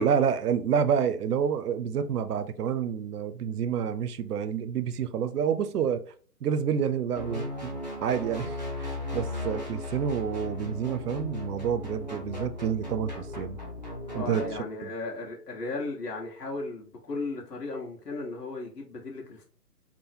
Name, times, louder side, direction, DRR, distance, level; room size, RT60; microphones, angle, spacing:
voice 1, 0.0-6.1 6.4-13.6 14.1-14.9, right 7 dB, 70° right, 0.6 m, -29 dB
sound 1, 7.1-14.6, left 1 dB, 30° left, 0.6 m, -36 dB
voice 2, 14.1-19.5, left 3 dB, 75° left, 1.3 m, -35 dB
3.6 x 2.1 x 4.2 m
hypercardioid pair, 175°, 48 cm